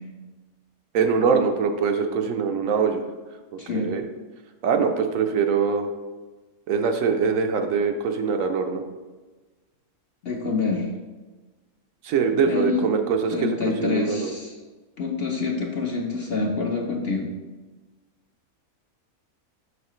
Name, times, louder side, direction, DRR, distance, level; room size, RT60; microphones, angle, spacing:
voice 1, 0.9-3.0 3.5-4.0 4.6-5.9 6.7-8.8 12.0-14.3, right 5 dB, 70° right, 5 dB, 0.9 m, -23 dB
voice 2, 3.6-3.9 10.2-10.9 12.4-12.9 13.3-14.5 15.0-17.3, left 4 dB, 55° left, 1 dB, 0.7 m, -26 dB
6.4 x 5.5 x 3.0 m, 1.3 s
omnidirectional pair, 1.5 m